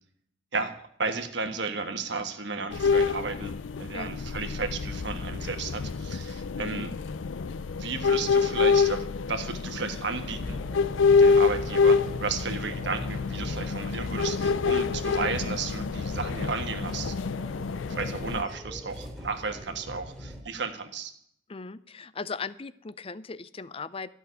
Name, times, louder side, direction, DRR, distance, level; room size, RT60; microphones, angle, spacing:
voice 1, 0.5-3.5 3.8-6.9 7.8-10.6 11.2-17.2 17.9-21.1, right 4 dB, 65° right, 6 dB, 1.4 m, -33 dB
sound 1, 2.7-18.4, left 5 dB, 80° left, 0.5 m, -27 dB
sound 2, 10.2-20.4, equal, 5° left, 2.5 m, -41 dB
voice 2, 21.5-24.1, left 4 dB, 30° left, 17 dB, 0.5 m, -38 dB
13.5 x 6.4 x 9.7 m, 0.68 s
head